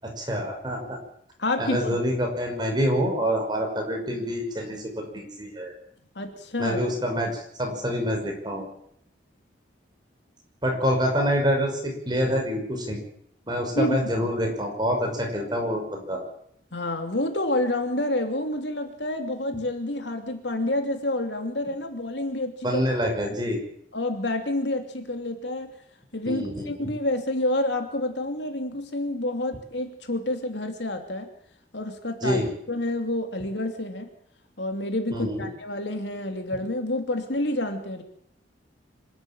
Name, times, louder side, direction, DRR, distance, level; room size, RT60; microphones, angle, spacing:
voice 1, 0.0-1.0 1.6-5.7 6.6-8.6 10.6-13.0 13.5-16.2 22.6-23.6 26.3-26.7 32.2-32.5 35.1-35.5, equal, 20° right, 2 dB, 5.8 m, -26 dB
voice 2, 1.4-2.0 6.1-6.8 13.8-14.3 16.7-22.8 23.9-25.7 26.1-31.3 31.7-32.4 32.7-34.1 34.6-38.0, left 1 dB, 70° left, 5 dB, 2.9 m, -28 dB
25.5 x 12.5 x 9.0 m, 0.69 s
head